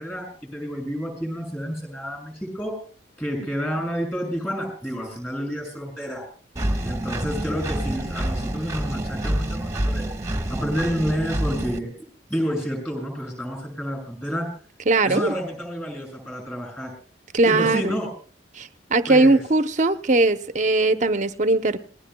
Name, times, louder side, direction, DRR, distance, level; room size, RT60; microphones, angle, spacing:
voice 1, 0.0-2.7 3.2-6.2 6.8-10.1 10.5-11.9 12.3-14.5 15.0-16.9 17.4-18.1 19.1-19.4, equal, 10° left, 6.2 m, -29 dB
Engine, 6.6-11.8, right 1 dB, 15° right, 1.3 m, -27 dB
voice 2, 14.9-15.3 17.3-18.0 18.6-21.8, right 2 dB, 40° right, 0.8 m, -20 dB
27.5 x 19.0 x 2.2 m
head